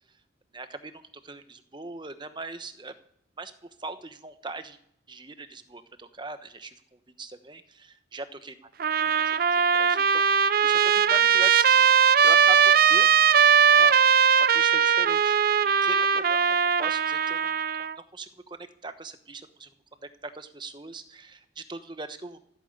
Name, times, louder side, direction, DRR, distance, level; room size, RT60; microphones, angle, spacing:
voice 1, 0.5-2.9 3.4-4.8 5.1-8.5 9.0-11.9 12.2-13.3 13.6-14.0 14.5-15.4 15.7-19.7 20.0-22.4, right 3 dB, 25° right, 10 dB, 1.0 m, -40 dB
Trumpet, 8.8-17.9, right 7 dB, 50° right, 0.5 m, -20 dB
15.0 x 8.6 x 8.1 m, 0.72 s
head